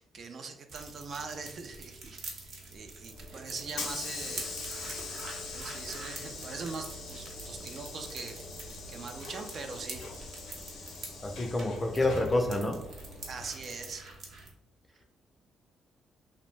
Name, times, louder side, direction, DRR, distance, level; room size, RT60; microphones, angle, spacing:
voice 1, 0.0-4.6 5.5-10.1 10.9-11.0 13.3-14.1, right 4 dB, 55° right, 0.3 m, -42 dB
sound 1, 0.7-14.5, right 3 dB, 70° right, 0.7 m, -46 dB
Hiss / Sliding door, 3.1-13.9, left 3 dB, 80° left, 0.6 m, -42 dB
voice 2, 11.2-12.9, left 1 dB, 20° left, 0.4 m, -28 dB
2.6 x 2.0 x 3.0 m
cardioid pair, 90°, 0 cm